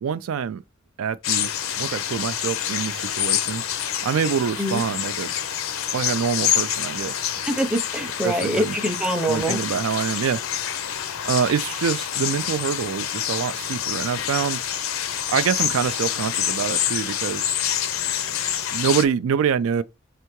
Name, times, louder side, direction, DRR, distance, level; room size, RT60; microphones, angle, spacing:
voice 1, 0.0-0.6 1.0-1.5 1.8-3.6 4.0-5.3 5.9-7.2 8.2-8.8 9.3-10.4 11.2-14.6 15.3-17.6 18.7-19.8, right 7 dB, 75° right, 0.3 m, -25 dB
sound 1, 1.2-19.0, left 10 dB, 70° left, 0.5 m, -27 dB
voice 2, 7.5-9.6, equal, 5° right, 0.6 m, -24 dB
4.5 x 3.3 x 3.0 m
head